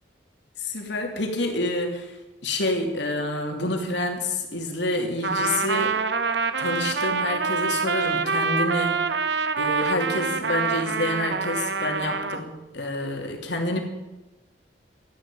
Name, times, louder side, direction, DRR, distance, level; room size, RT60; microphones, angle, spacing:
voice 1, 0.6-2.1 2.4-6.0 6.6-9.0 9.6-13.8, left 2 dB, 70° left, 2 dB, 3.0 m, -28 dB
Trumpet, 5.2-12.4, right 5 dB, 70° right, 0.9 m, -26 dB
13.5 x 11.0 x 9.3 m, 1.1 s
head